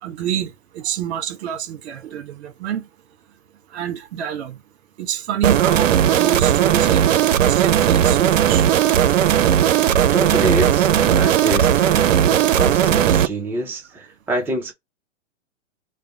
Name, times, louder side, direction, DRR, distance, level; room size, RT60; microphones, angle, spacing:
voice 1, 0.0-2.8 3.7-4.6 5.0-7.1 7.5-8.6, right 10 dB, 60° right, 1.1 m, -27 dB
sound 1, 5.4-13.3, right 10 dB, 90° right, 0.5 m, -16 dB
voice 2, 10.1-14.7, right 1 dB, 5° right, 0.6 m, -26 dB
3.4 x 2.2 x 4.1 m
hypercardioid pair, 125°, 37 cm